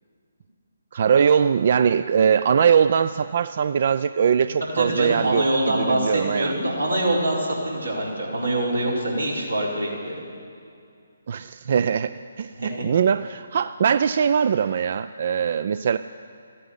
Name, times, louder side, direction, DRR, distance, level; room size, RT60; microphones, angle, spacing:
voice 1, 0.9-6.5 11.3-16.0, right 7 dB, 45° right, 13 dB, 0.3 m, -21 dB
voice 2, 4.7-10.1 12.6-12.7, right 1 dB, 90° right, -4 dB, 5.0 m, -24 dB
14.5 x 9.7 x 9.7 m, 2.4 s
figure-of-eight pair, 140°, 0 cm